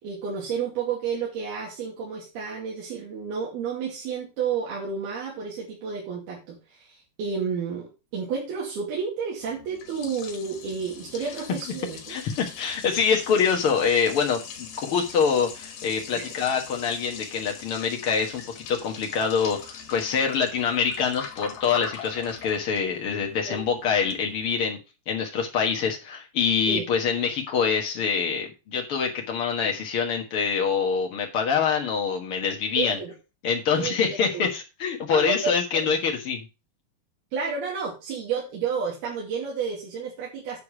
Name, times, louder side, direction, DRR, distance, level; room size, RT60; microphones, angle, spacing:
voice 1, 0.0-12.1 16.2-16.3 23.5-23.6 26.7-26.9 32.8-33.1 33.8-33.9 34.3-34.5 35.1-36.0 37.3-40.6, right 6 dB, 65° right, -5 dB, 4.5 m, -31 dB
Liquid, 9.4-24.6, left 7 dB, 70° left, 3.6 m, -42 dB
voice 2, 12.1-24.8 25.1-33.0 33.4-36.5, left 6 dB, 85° left, 2 dB, 1.2 m, -25 dB
9.5 x 4.9 x 6.0 m, 0.29 s
omnidirectional pair, 4.8 m